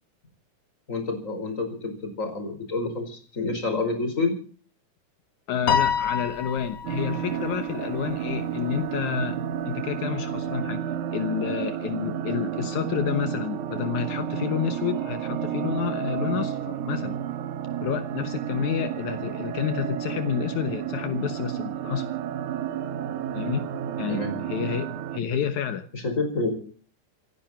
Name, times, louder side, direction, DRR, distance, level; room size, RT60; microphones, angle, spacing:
voice 1, 0.9-4.3 24.1-24.3 25.9-26.5, left 3 dB, 25° left, 5 dB, 5.3 m, -28 dB
voice 2, 5.5-9.4 9.7-10.9 11.1-17.2 17.8-22.1 23.3-23.7 24.0-24.2 24.5-25.9, left 8 dB, 75° left, 9 dB, 2.6 m, -29 dB
Piano, 5.7-8.2, left 7 dB, 55° left, 2.1 m, -27 dB
sound 1, 6.8-25.2, right 10 dB, 80° right, 2.5 m, -31 dB
28.0 x 10.5 x 4.5 m, 0.43 s
omnidirectional pair, 3.5 m